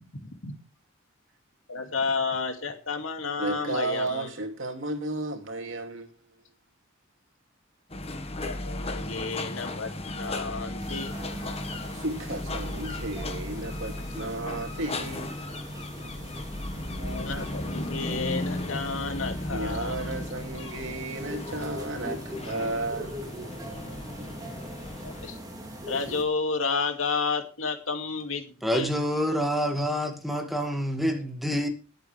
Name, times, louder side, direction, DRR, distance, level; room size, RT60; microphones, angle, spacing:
voice 1, 0.1-0.5 1.7-4.3 8.4-11.7 16.9-19.9 25.0-25.4 25.9-28.9, left 4 dB, 85° left, 5 dB, 2.5 m, -31 dB
voice 2, 3.4-6.1 11.9-15.3 19.5-23.2, right 2 dB, 70° right, 3 dB, 2.7 m, -33 dB
sound 1, 7.9-25.3, left 1 dB, 30° left, 1.4 m, -36 dB
sound 2, 10.8-26.2, equal, 20° right, 3.2 m, -42 dB
voice 3, 28.6-31.7, equal, ahead, 3 dB, 2.2 m, -27 dB
20.5 x 8.0 x 3.4 m, 0.34 s
head